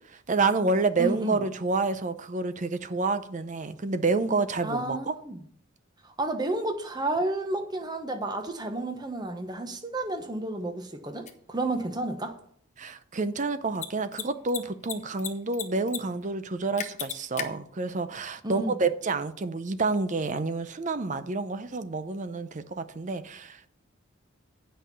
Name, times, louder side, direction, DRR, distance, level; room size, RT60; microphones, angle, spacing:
voice 1, 0.1-5.1 12.8-23.7, right 3 dB, 35° right, 0.6 m, -29 dB
voice 2, 1.0-1.4 4.6-5.4 6.0-12.4 18.4-18.7, right 2 dB, 20° right, 1.1 m, -31 dB
Mechanisms, 11.3-11.4 13.7-13.9 14.1-14.2 14.5-15.3 15.5-16.0 16.2-16.3 16.8-17.5, left 9 dB, 35° left, 0.9 m, -33 dB
8.8 x 5.6 x 6.9 m
head